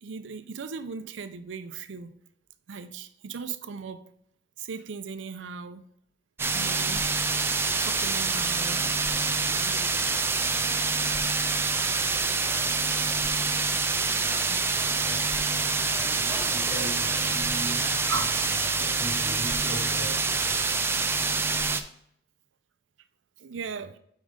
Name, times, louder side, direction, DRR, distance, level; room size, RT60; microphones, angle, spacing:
voice 1, 0.0-2.1 2.7-4.0 4.6-5.9 6.5-7.0 7.8-8.9 9.4-9.9 10.2-10.7 14.5-14.6 18.1-18.3 23.4-24.0, right 5 dB, 90° right, 0.5 m, -38 dB
sound 1, 6.4-21.8, right 4 dB, 15° right, 0.3 m, -26 dB
voice 2, 12.4-12.8 14.2-20.6, right 1 dB, 20° left, 2.1 m, -40 dB
5.3 x 4.8 x 3.7 m
head